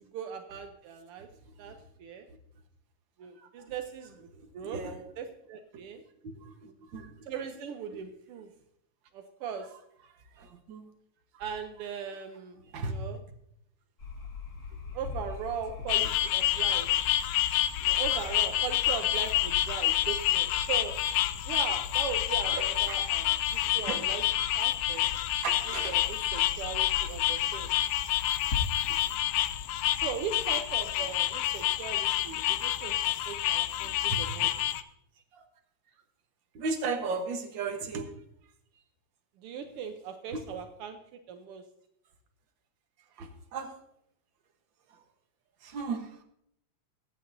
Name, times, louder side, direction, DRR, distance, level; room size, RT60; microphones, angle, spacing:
voice 1, 0.1-1.3 1.6-2.3 3.2-4.2 4.5-4.8 5.2-6.0 7.3-8.5 9.1-9.7 11.4-13.2 14.9-16.9 17.8-21.0 21.5-24.2 24.5-25.0 25.7-27.7 30.0-34.5 39.4-41.0 41.3-41.6, right 7 dB, 80° right, 6 dB, 1.3 m, -39 dB
voice 2, 4.3-5.0 6.2-7.2 7.9-8.0 10.3-10.9 11.3-11.5 12.6-13.0 22.5-23.0 23.9-24.0 25.4-26.0 29.3-29.4 32.4-32.5 33.8-34.5 35.3-35.4 36.5-38.1 40.3-40.4 43.2-43.8 44.9-45.0 45.6-46.2, right 4 dB, 50° right, 4 dB, 1.5 m, -36 dB
sound 1, 14.0-30.9, left 5 dB, 35° left, 2.1 m, -42 dB
sound 2, 15.9-34.8, left 13 dB, 90° left, 2.1 m, -28 dB
23.0 x 8.5 x 2.7 m, 0.73 s
omnidirectional pair, 3.5 m